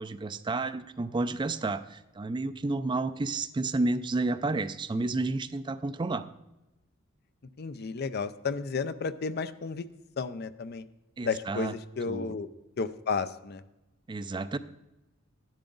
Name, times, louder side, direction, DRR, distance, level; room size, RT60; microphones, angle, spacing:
voice 1, 0.0-6.3 11.2-11.7 12.1-12.4 14.1-14.6, right 3 dB, 25° right, 12 dB, 0.4 m, -31 dB
voice 2, 7.6-9.9 10.2-10.8 11.2-12.5 12.8-13.6, left 5 dB, 55° left, 13 dB, 0.5 m, -32 dB
12.0 x 10.5 x 3.9 m, 0.97 s
head